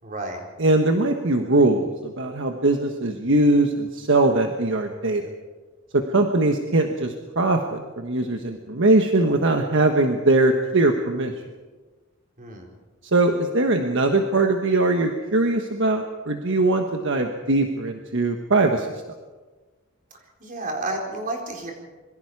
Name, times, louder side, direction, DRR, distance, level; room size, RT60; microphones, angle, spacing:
voice 1, 0.0-0.4 12.4-12.7 20.4-21.7, right 2 dB, 40° right, 1 dB, 4.2 m, -31 dB
voice 2, 0.6-5.2 5.9-11.3 13.1-18.9, right 2 dB, 60° right, 4 dB, 1.4 m, -21 dB
26.5 x 22.5 x 4.8 m, 1.3 s
head